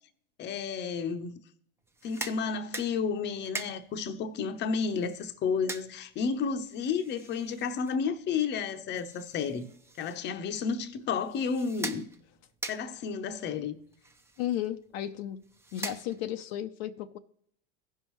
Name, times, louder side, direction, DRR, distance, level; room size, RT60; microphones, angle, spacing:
voice 1, 0.4-1.3 2.0-9.7 10.0-12.1 12.7-13.8, left 5 dB, 30° left, 0.8 m, -31 dB
sound 1, 1.8-16.5, right 2 dB, 10° right, 0.6 m, -45 dB
voice 2, 14.4-15.4 15.7-17.2, left 12 dB, 65° left, 0.6 m, -34 dB
16.0 x 5.5 x 3.1 m
supercardioid pair, 120°, 33 cm